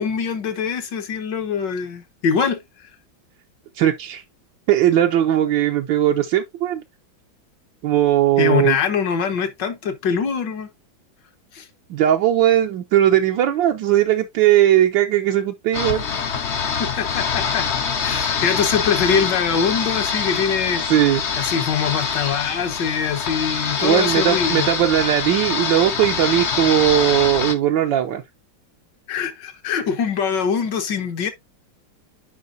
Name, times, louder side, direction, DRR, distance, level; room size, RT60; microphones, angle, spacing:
voice 1, 0.0-2.9 8.4-10.7 11.5-11.7 16.8-17.7 18.0-20.9 21.4-24.7 29.1-31.3, left 6 dB, 65° left, 1.7 m, -23 dB
voice 2, 3.8-4.2 4.7-6.8 7.8-8.8 11.9-16.0 20.9-21.2 23.8-28.2, right 12 dB, 75° right, 1.4 m, -18 dB
sound 1, 15.7-27.6, left 6 dB, 50° left, 0.8 m, -24 dB
9.5 x 5.0 x 2.6 m
omnidirectional pair, 2.1 m